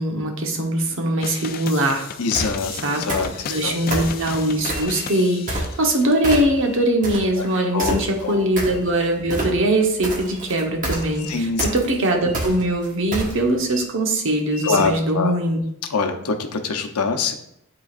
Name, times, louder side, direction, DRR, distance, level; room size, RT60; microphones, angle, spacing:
voice 1, 0.0-2.0 2.7-3.1 3.4-15.6, right 1 dB, 60° right, 2 dB, 1.0 m, -21 dB
sound 1, 1.2-6.1, left 7 dB, 40° left, 0.4 m, -35 dB
voice 2, 2.2-2.7 3.0-3.8 7.3-7.4 7.7-8.0 8.2-8.4 11.3-11.7 14.6-15.3 15.9-17.3, left 4 dB, 85° left, 5 dB, 0.7 m, -24 dB
sound 2, 2.3-2.6 3.1-3.6 3.9-5.0 5.5-6.0 6.2-6.7 7.0-13.6, right 1 dB, 35° right, 1.3 m, -27 dB
sound 3, 4.6-5.5 6.1-7.0 7.4-8.2 8.7-9.1 9.6-9.7 10.1-10.6 10.9-11.4 11.7-11.9 12.2-12.5 12.9-13.3 13.6-13.9 14.4-14.9, left 4 dB, 5° left, 1.6 m, -41 dB
10.5 x 3.9 x 2.4 m, 0.78 s
head